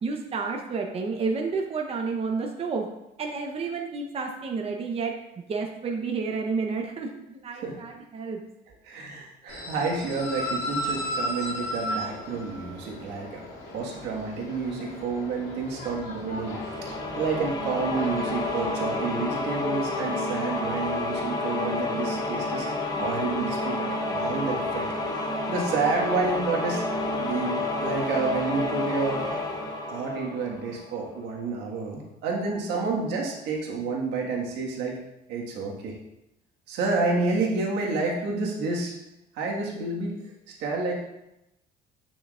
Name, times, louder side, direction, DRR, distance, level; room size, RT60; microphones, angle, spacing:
voice 1, 0.0-2.9 3.2-5.1 5.5-8.4, right 4 dB, 35° right, 2 dB, 0.8 m, -30 dB
voice 2, 8.8-13.4 13.7-16.6 17.2-22.7 23.0-24.9 25.5-26.8 27.2-29.2 29.9-35.0 35.3-36.0 36.7-38.9 39.3-40.1 40.6-40.9, right 4 dB, 85° right, -2 dB, 1.7 m, -29 dB
sound 1, 9.5-19.1, left 1 dB, 75° left, 2.5 m, -36 dB
sound 2, 16.5-31.1, left 2 dB, 20° left, 0.9 m, -30 dB
9.3 x 5.9 x 2.5 m, 0.89 s
cardioid pair, 110°, 17 cm